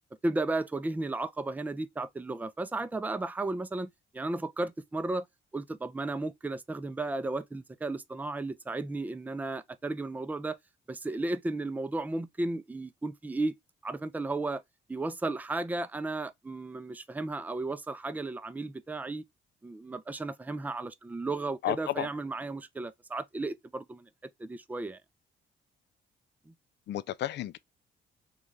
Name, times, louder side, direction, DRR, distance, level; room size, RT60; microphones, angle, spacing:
voice 1, 0.2-5.3 5.5-10.6 10.9-13.5 13.8-14.6 14.9-19.2 19.6-24.1 24.4-25.0 26.5-26.6, right 2 dB, 10° right, 0.4 m, -34 dB
voice 2, 21.6-22.1 26.9-27.6, left 13 dB, 60° left, 0.4 m, -32 dB
3.1 x 2.3 x 3.7 m
cardioid pair, 90°, 20 cm